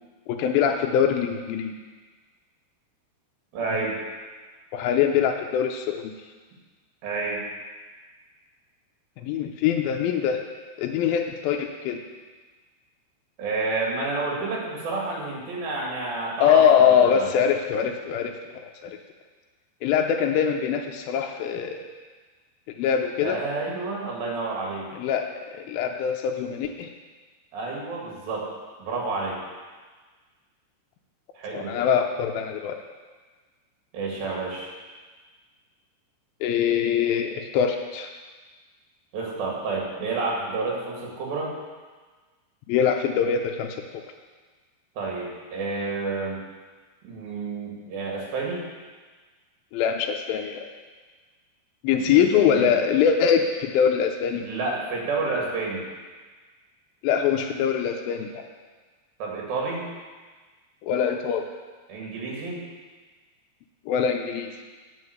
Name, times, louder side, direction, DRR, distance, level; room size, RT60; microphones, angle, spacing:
voice 1, 0.3-1.7 4.7-6.1 9.2-10.4 10.8-12.0 16.4-19.0 19.8-21.9 22.8-23.4 25.0-26.9 31.5-32.8 36.4-38.1 42.7-43.8 49.7-50.7 51.8-54.4 57.0-58.4 60.8-61.5 63.9-64.5, left 8 dB, 85° left, 3 dB, 2.1 m, -23 dB
voice 2, 3.5-4.0 7.0-7.5 13.4-17.3 23.2-24.9 27.5-28.5 28.8-29.4 31.4-31.9 33.9-34.7 39.1-41.5 45.0-46.4 47.0-48.7 52.1-52.8 54.3-55.9 59.2-59.9 61.9-62.6, right 3 dB, 60° right, -2 dB, 3.7 m, -30 dB
9.7 x 5.4 x 7.9 m, 1.4 s
omnidirectional pair, 4.8 m